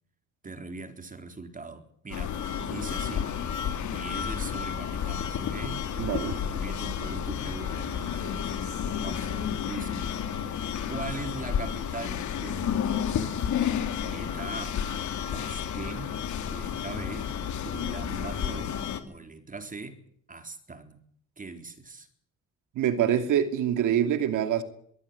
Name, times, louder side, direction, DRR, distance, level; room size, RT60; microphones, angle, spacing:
voice 1, 0.4-3.3 3.9-5.9 6.3-8.7 9.0-10.5 10.9-13.3 14.0-14.8 15.3-16.2 16.5-17.3 17.7-18.7 19.1-20.0 20.3-21.0 21.4-22.1, right 3 dB, 25° right, 3.9 m, -41 dB
sound 1, 2.1-19.0, left 8 dB, 70° left, 2.6 m, -31 dB
voice 2, 6.0-6.4 22.7-24.6, right 10 dB, 85° right, 2.7 m, -25 dB
22.5 x 14.5 x 9.7 m
cardioid pair, 90°, 30 cm